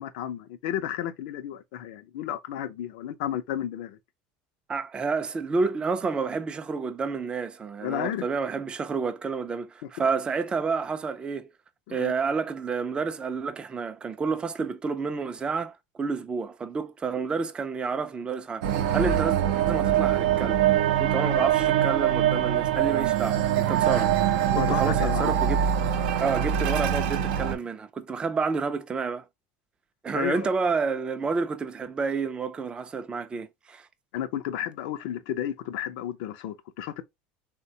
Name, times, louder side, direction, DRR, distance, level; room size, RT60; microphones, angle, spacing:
voice 1, 0.0-4.0 7.8-8.3 9.8-9.9 11.9-12.1 24.5-25.3 30.1-30.5 34.1-37.0, left 11 dB, 75° left, 0.4 m, -32 dB
voice 2, 4.7-11.5 11.9-19.4 19.7-25.6 26.2-29.2 30.0-33.9, right 4 dB, 20° right, 0.3 m, -29 dB
sound 1, 18.6-27.6, right 10 dB, 80° right, 0.5 m, -23 dB
3.5 x 2.1 x 2.7 m
supercardioid pair, 115°, 5 cm